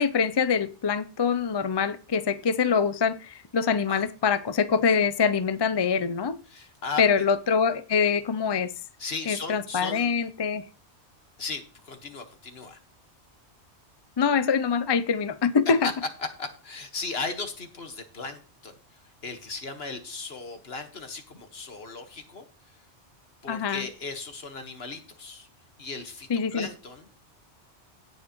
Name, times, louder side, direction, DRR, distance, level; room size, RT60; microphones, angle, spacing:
voice 1, 0.0-6.4 7.0-8.7 9.3-10.6 14.2-15.8 23.5-23.9 26.3-26.7, left 6 dB, 40° left, 13 dB, 0.4 m, -24 dB
voice 2, 6.5-7.2 9.0-10.1 11.4-12.8 15.8-15.9 16.2-18.8 19.2-22.4 23.4-25.5 25.8-27.1, left 4 dB, 60° left, 6 dB, 1.7 m, -36 dB
17.0 x 6.4 x 3.0 m, 0.34 s
omnidirectional pair, 1.2 m